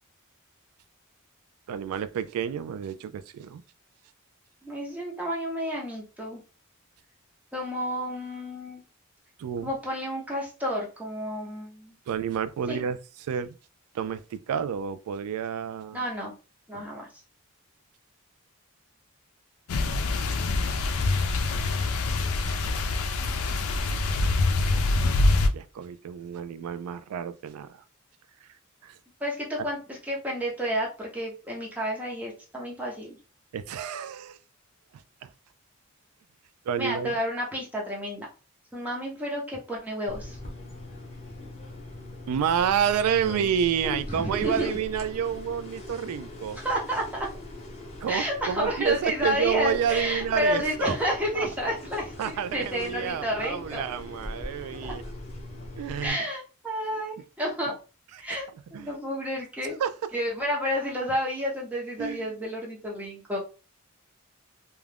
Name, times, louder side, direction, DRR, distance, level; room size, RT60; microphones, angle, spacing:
voice 1, 1.7-3.6 9.4-9.7 12.1-13.5 13.9-16.1 16.7-16.8 24.6-24.9 25.5-27.8 28.8-29.0 33.5-34.4 35.2-35.3 36.7-37.1 42.3-46.6 48.0-51.0 51.3-51.5 52.2-55.0 55.8-56.2 58.3-58.4 58.7-58.9 59.8-59.9 62.0-62.3, right 8 dB, 85° right, 0.3 m, -29 dB
voice 2, 4.6-6.4 7.5-8.8 9.6-11.9 12.7-12.8 15.9-16.3 16.7-17.1 29.2-33.2 36.8-38.3 38.7-40.4 43.8-44.7 46.6-47.3 48.1-53.8 56.0-57.7 58.2-59.8 60.1-63.4, equal, 5° right, 0.7 m, -30 dB
sound 1, 19.7-25.5, left 2 dB, 75° left, 0.4 m, -25 dB
sound 2, 40.1-56.1, left 1 dB, 30° left, 0.8 m, -41 dB
2.4 x 2.2 x 3.3 m
head